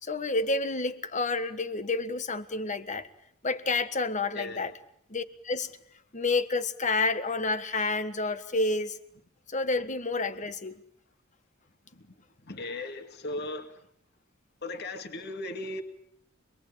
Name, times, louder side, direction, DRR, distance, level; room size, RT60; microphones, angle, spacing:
voice 1, 0.0-3.1 3.4-4.7 5.1-5.7 6.1-9.0 9.5-10.8, left 3 dB, 35° left, 11 dB, 1.5 m, -29 dB
voice 2, 12.4-13.8 14.6-15.8, left 2 dB, 55° left, 5 dB, 2.4 m, -37 dB
26.5 x 22.0 x 8.8 m, 0.69 s
head